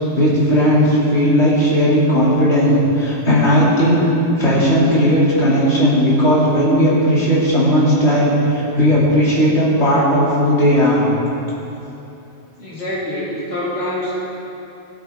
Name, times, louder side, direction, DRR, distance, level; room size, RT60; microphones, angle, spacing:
voice 1, 0.2-4.1 4.4-11.0, equal, 85° left, -8 dB, 2.9 m, -15 dB
voice 2, 12.6-14.2, left 1 dB, 70° left, -8 dB, 2.4 m, -25 dB
16.5 x 7.3 x 3.5 m, 2.9 s
omnidirectional pair, 1.1 m